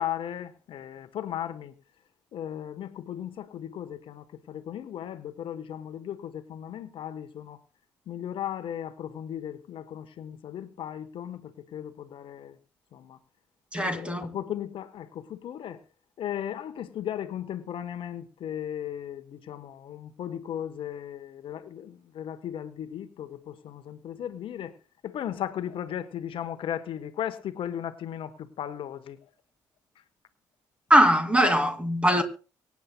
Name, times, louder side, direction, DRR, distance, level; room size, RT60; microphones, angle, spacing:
voice 1, 0.0-1.7 2.3-7.6 8.1-12.6 12.9-13.2 13.8-15.8 16.2-24.7 25.0-29.2, left 10 dB, 55° left, 1.1 m, -36 dB
voice 2, 13.7-14.4 30.9-32.2, right 1 dB, 10° right, 2.4 m, -21 dB
24.5 x 9.5 x 2.2 m
hypercardioid pair, 45°, 10 cm